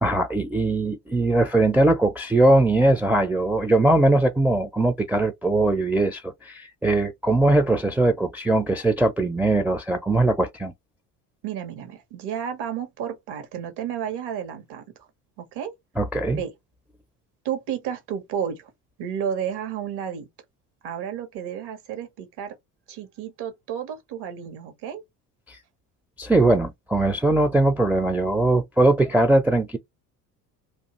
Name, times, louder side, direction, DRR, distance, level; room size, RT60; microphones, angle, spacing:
voice 1, 0.0-10.7 16.0-16.4 25.5-25.6 26.2-29.8, right 2 dB, 5° right, 0.4 m, -20 dB
voice 2, 11.4-14.8 15.4-15.7 16.3-16.5 17.4-18.7 19.0-20.3 20.8-22.5 22.9-25.0, right 8 dB, 65° right, 1.3 m, -32 dB
2.6 x 2.4 x 3.0 m
hypercardioid pair, 70°, 43 cm